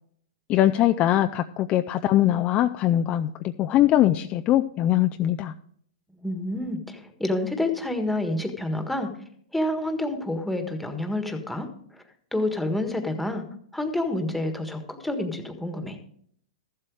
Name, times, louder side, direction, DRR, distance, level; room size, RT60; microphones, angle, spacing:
voice 1, 0.5-5.5, left 13 dB, 35° left, 8 dB, 0.5 m, -22 dB
voice 2, 6.1-9.1 9.5-11.7 12.3-13.5 13.7-16.0, left 1 dB, ahead, 5 dB, 1.6 m, -28 dB
14.0 x 7.8 x 4.8 m, 0.63 s
hypercardioid pair, 120°, 4 cm